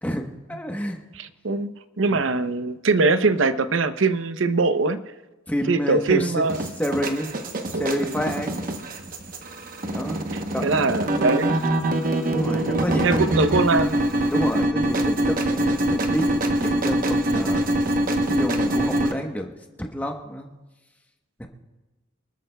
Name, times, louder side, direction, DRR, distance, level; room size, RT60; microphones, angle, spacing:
voice 1, 0.0-1.0 2.1-2.2 5.5-6.5 6.8-7.3 7.7-8.7 9.9-10.2 10.5-10.7 12.3-13.2 14.3-16.3 16.5-17.7 18.3-20.5 21.4-21.5, equal, 10° left, 3 dB, 1.0 m, -29 dB
voice 2, 1.2-1.7 2.0-5.0 5.7-6.6 7.7-8.2 10.6-11.6 13.0-14.0, right 3 dB, 70° right, 11 dB, 0.7 m, -22 dB
sound 1, 6.5-19.1, right 1 dB, 45° right, 0.9 m, -24 dB
25.0 x 13.0 x 2.3 m, 1.1 s
head